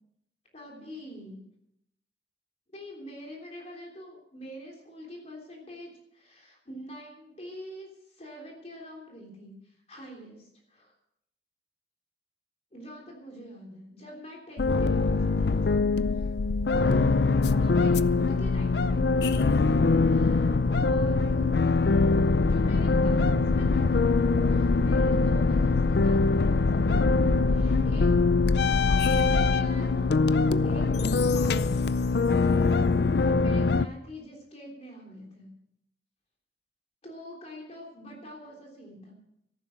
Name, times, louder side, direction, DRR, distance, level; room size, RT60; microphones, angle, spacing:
voice 1, 0.5-1.4 2.7-10.9 12.7-15.9 16.1-16.3 17.5-21.6 22.4-24.0 24.5-27.2 27.4-28.1 28.6-32.2 33.2-35.5 37.0-39.1, equal, 35° left, 0 dB, 3.4 m, -45 dB
sound 1, 14.6-33.9, left 3 dB, 65° left, 0.5 m, -23 dB
14.0 x 12.0 x 6.4 m, 0.76 s
head